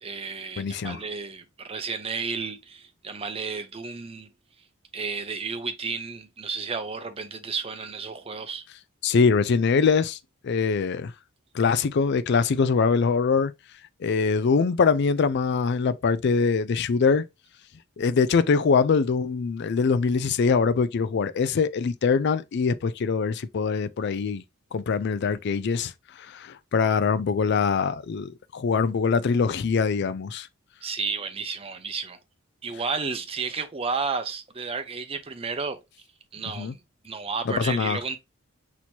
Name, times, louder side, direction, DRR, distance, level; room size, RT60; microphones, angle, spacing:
voice 1, 0.0-4.3 4.9-8.6 30.8-32.2 32.6-35.8 36.3-38.2, right 5 dB, 25° right, 0.6 m, -32 dB
voice 2, 0.6-1.0 9.0-10.2 10.4-11.1 11.5-13.5 14.0-17.2 18.0-24.4 24.7-25.9 26.2-30.5 36.6-36.7 37.5-38.0, left 5 dB, 50° left, 0.4 m, -23 dB
6.1 x 2.9 x 2.7 m
head